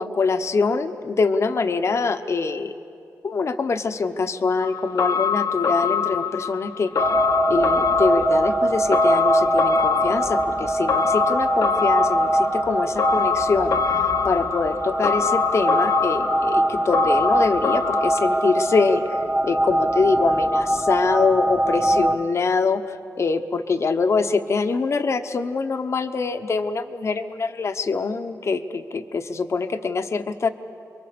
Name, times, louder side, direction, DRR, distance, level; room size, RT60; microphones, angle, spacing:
voice 1, 0.0-2.7 3.2-7.1 7.5-19.2 19.4-30.5, left 4 dB, 50° left, 8 dB, 1.0 m, -24 dB
sound 1, 4.6-18.8 19.1-19.2, left 7 dB, 85° left, 1.3 m, -25 dB
sound 2, 7.0-22.2, right 1 dB, 20° right, 1.2 m, -22 dB
28.5 x 23.0 x 6.9 m, 2.5 s
wide cardioid pair, 125°, 6 cm